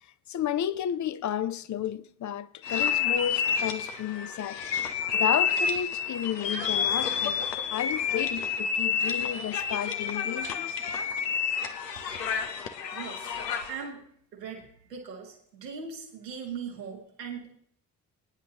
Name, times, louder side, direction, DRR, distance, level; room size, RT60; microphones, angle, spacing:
voice 1, 0.3-4.6 5.1-7.4 7.7-10.8, left 10 dB, 40° left, 0.7 m, -32 dB
sound 1, 2.6-13.8, left 7 dB, 85° left, 0.9 m, -29 dB
voice 2, 12.9-13.3 13.7-17.5, right 6 dB, 90° right, 2.0 m, -40 dB
23.5 x 9.7 x 3.0 m
hypercardioid pair, 45°, 48 cm